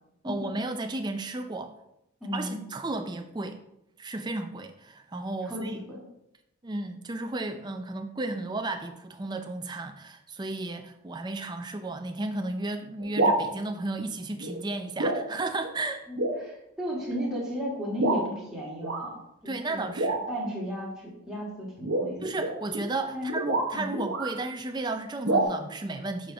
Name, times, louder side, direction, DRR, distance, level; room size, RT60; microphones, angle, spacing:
voice 1, 0.2-1.7 2.3-3.6 4.0-5.8 6.6-16.0 19.5-20.2 22.2-26.3, right 2 dB, 20° right, 6 dB, 0.4 m, -33 dB
voice 2, 2.2-2.6 5.4-6.0 16.1-19.2 19.4-19.9 20.3-22.2 23.1-23.3 23.7-24.0, equal, 5° right, -6 dB, 1.8 m, -34 dB
sound 1, 13.0-13.5 14.4-14.7 15.0-15.3 15.6-15.7 16.2-16.4 17.1-17.3 18.0-18.3 18.8-19.1 20.0-20.5 21.8-24.4 25.2-25.4, right 2 dB, 65° right, 1.0 m, -28 dB
7.1 x 5.2 x 3.4 m, 0.82 s
head